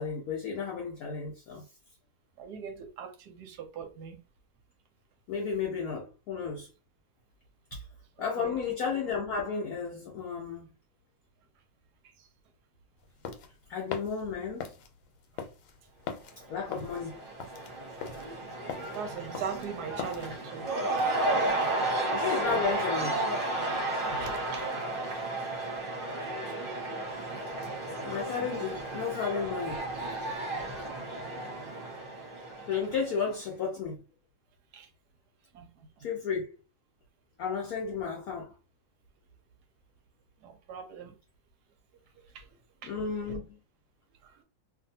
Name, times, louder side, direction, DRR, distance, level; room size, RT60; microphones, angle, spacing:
voice 1, 0.0-1.6 5.3-6.7 8.2-10.7 13.7-14.7 16.5-17.2 22.1-23.1 28.0-29.8 32.7-34.0 36.0-36.5 37.4-38.5 42.8-43.6, left 6 dB, 65° left, 0.9 m, -33 dB
voice 2, 2.4-4.2 8.2-8.6 18.9-20.7 22.3-22.8 24.1-24.7 25.4-25.5 30.5-30.6 34.7-34.9 35.5-35.7 40.4-41.2 42.3-42.5 42.8-42.9 43.3-43.4 44.2-44.3, right 7 dB, 70° right, 1.1 m, -41 dB
sound 1, 13.0-20.3, left 6 dB, 85° left, 1.4 m, -41 dB
Cheering / Crowd, 16.4-33.3, right 2 dB, 35° right, 1.0 m, -33 dB
2.6 x 2.6 x 2.7 m
omnidirectional pair, 2.0 m